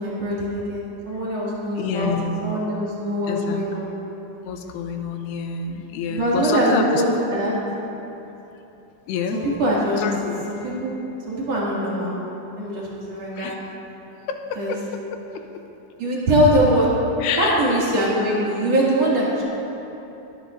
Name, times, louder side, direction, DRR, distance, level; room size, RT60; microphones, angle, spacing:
voice 1, 0.0-3.9 6.1-7.5 9.3-10.0 10.5-10.9 11.3-12.2 12.6-13.5 14.6-14.8 16.0-16.9 17.4-19.4, right 1 dB, 45° right, -7 dB, 3.0 m, -22 dB
voice 2, 1.8-2.5 3.3-3.7 4.5-7.0 8.5-8.6 9.1-9.4 10.0-10.7 13.4-13.6 14.3-14.8 15.1-15.4 17.2-17.6, left 6 dB, 90° left, 5 dB, 2.9 m, -28 dB
23.5 x 12.0 x 2.6 m, 3.0 s
omnidirectional pair, 4.7 m